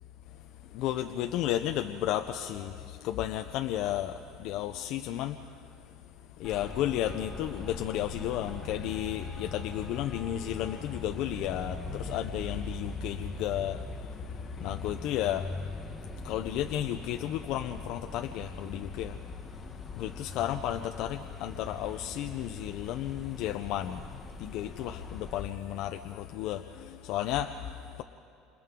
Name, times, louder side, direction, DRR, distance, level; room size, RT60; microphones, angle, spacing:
voice 1, 0.7-5.4 6.4-15.5 16.2-19.2 20.0-24.1 24.4-28.0, left 12 dB, 60° left, 6 dB, 0.6 m, -33 dB
Traffic noise roadway noise, 6.4-25.4, left 3 dB, 15° left, 1.2 m, -41 dB
30.0 x 27.0 x 3.8 m, 2.3 s
cardioid pair, 145°, 0 cm